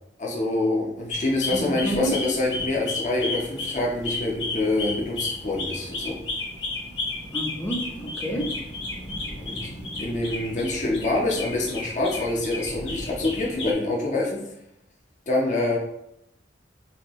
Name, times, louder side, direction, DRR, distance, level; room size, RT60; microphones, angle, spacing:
voice 1, 0.2-6.2 9.4-9.6 10.0-14.4 15.3-15.8, left 2 dB, 45° left, -2 dB, 0.9 m, -26 dB
sound 1, 1.1-13.7, left 2 dB, 85° left, 1.3 m, -33 dB
voice 2, 1.5-2.1 7.3-8.5, right 1 dB, 10° left, -1 dB, 0.8 m, -29 dB
5.8 x 2.7 x 3.1 m, 0.79 s
head